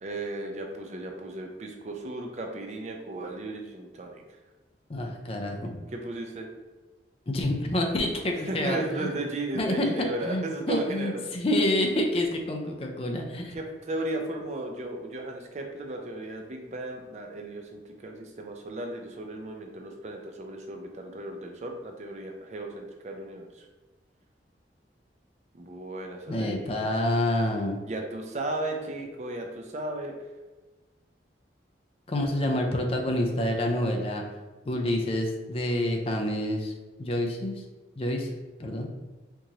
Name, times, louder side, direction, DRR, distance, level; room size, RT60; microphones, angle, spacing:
voice 1, 0.0-4.2 5.9-6.5 8.5-11.2 13.5-23.7 25.5-26.8 27.8-30.1, right 2 dB, 40° right, 3 dB, 0.4 m, -35 dB
voice 2, 4.9-5.8 7.3-9.1 9.6-13.6 26.3-27.8 32.1-34.2 34.7-36.7 37.0-37.6 38.0-38.3 38.6-38.9, left 1 dB, 35° left, 2 dB, 0.4 m, -28 dB
4.5 x 2.6 x 2.8 m, 1.2 s
head